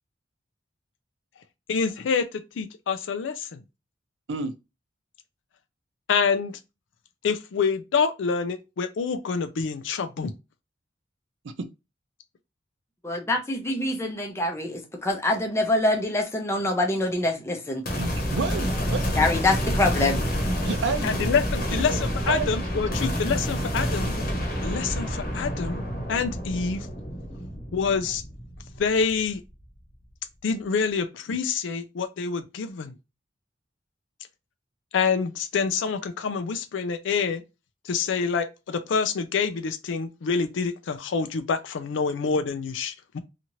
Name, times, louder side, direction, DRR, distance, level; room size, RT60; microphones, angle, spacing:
voice 1, 1.7-3.6 6.1-6.6 7.2-10.3 21.0-24.1 24.6-25.8 26.1-26.9 27.7-28.2 28.8-29.4 30.4-32.9 34.9-37.4 37.8-43.2, left 5 dB, 80° left, 0.4 m, -27 dB
voice 2, 13.0-17.8 19.1-20.2, left 2 dB, 15° left, 0.6 m, -25 dB
sound 1, 17.9-29.2, equal, 50° left, 0.9 m, -28 dB
voice 3, 18.0-19.2 20.6-21.1 21.7-21.8 22.3-22.5, right 4 dB, 80° right, 0.5 m, -29 dB
2.8 x 2.4 x 2.9 m
head